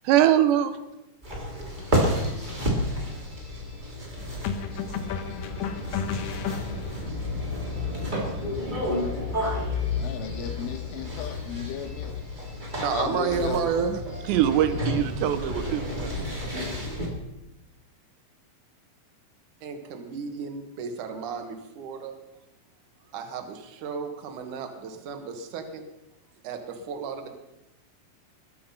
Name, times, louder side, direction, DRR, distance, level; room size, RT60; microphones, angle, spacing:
voice 1, 0.1-0.8 14.3-16.1, right 11 dB, 75° right, 10 dB, 3.0 m, -22 dB
sound 1, 1.2-17.1, left 1 dB, 15° right, 1.9 m, -31 dB
sound 2, 1.8-2.0 4.4-7.1, left 7 dB, 70° left, 2.6 m, -33 dB
voice 2, 10.0-12.1 12.9-13.6, left 9 dB, 85° left, 7 dB, 3.9 m, -35 dB
voice 3, 12.8-14.0 14.3-14.4 15.8-15.9 16.7-16.8 19.6-22.1 23.1-25.8 26.4-27.3, right 6 dB, 55° right, 5 dB, 2.5 m, -32 dB
21.5 x 8.4 x 5.7 m, 0.94 s
omnidirectional pair, 5.5 m